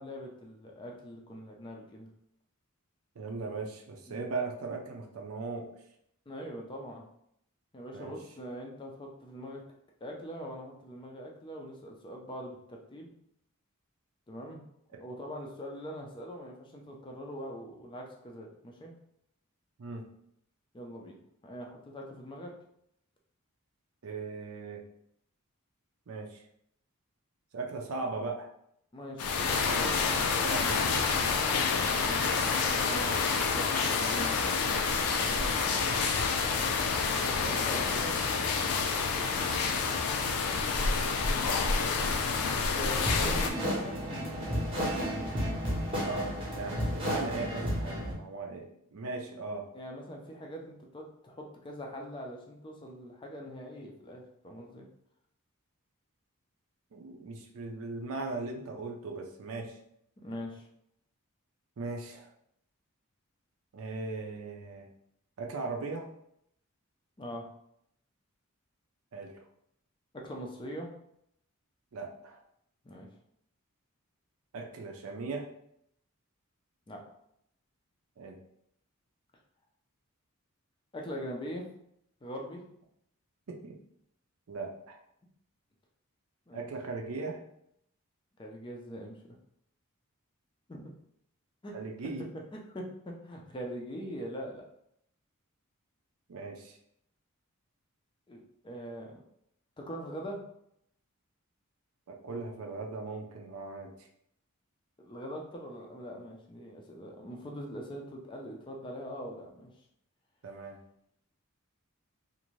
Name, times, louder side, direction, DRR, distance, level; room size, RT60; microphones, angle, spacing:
voice 1, 0.0-2.1 4.1-4.3 6.3-7.1 7.7-9.6 10.0-13.1 14.3-14.6 15.0-18.9 20.7-21.2 21.4-22.5 27.7-27.8 28.9-30.0 32.0-34.4 37.2-38.2 42.7-44.0 49.7-54.9 60.2-60.7 67.2-67.5 70.1-70.9 72.8-73.1 76.9-77.0 80.9-81.7 82.2-82.6 86.5-86.6 88.4-89.2 90.7-90.9 91.6-91.8 92.5-94.6 98.3-99.2 99.8-100.4 105.0-109.7, equal, 20° left, 0 dB, 0.4 m, -42 dB
voice 2, 3.2-5.7 7.9-8.1 14.9-15.0 19.8-20.0 24.0-24.8 26.1-26.4 27.5-28.5 29.4-31.6 35.2-36.1 39.2-39.8 46.0-49.7 56.9-59.8 61.8-62.3 63.7-64.9 65.4-66.1 69.1-69.4 71.9-72.4 74.5-75.5 78.2-78.4 83.5-83.8 84.5-85.0 86.5-87.4 91.7-92.3 96.3-96.8 102.1-103.9 110.4-110.8, right 3 dB, 75° right, 2 dB, 0.5 m, -39 dB
sound 1, 29.2-43.5, left 5 dB, 85° left, 0.4 m, -28 dB
sound 2, 43.0-48.1, equal, 25° right, 0.8 m, -32 dB
2.6 x 2.5 x 3.0 m, 0.74 s
head